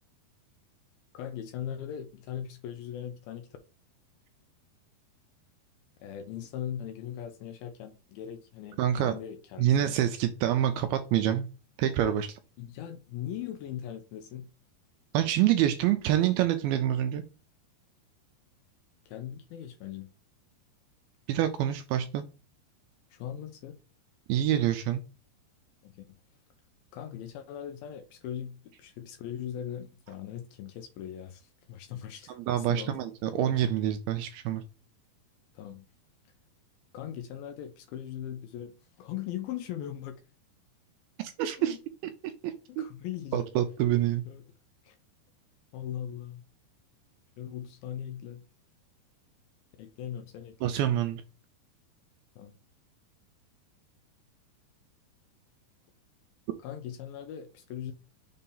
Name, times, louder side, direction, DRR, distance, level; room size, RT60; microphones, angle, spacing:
voice 1, 1.1-3.5 6.0-10.0 12.6-14.5 19.1-20.1 23.1-23.8 25.8-26.2 26.9-33.0 35.5-35.9 36.9-40.2 41.5-41.8 42.7-43.5 44.3-44.4 44.8-45.0 45.7-46.4 47.4-48.5 49.8-50.7 52.4-52.6 56.6-57.9, left 10 dB, 80° left, 2.2 m, -40 dB
voice 2, 8.8-9.2 9.6-11.5 11.8-12.4 15.1-17.2 21.3-22.2 24.3-25.0 32.3-34.6 41.2-41.8 42.2-42.9 43.3-44.2 50.6-51.2, right 11 dB, 80° right, 2.3 m, -27 dB
6.8 x 2.8 x 5.3 m
omnidirectional pair, 4.8 m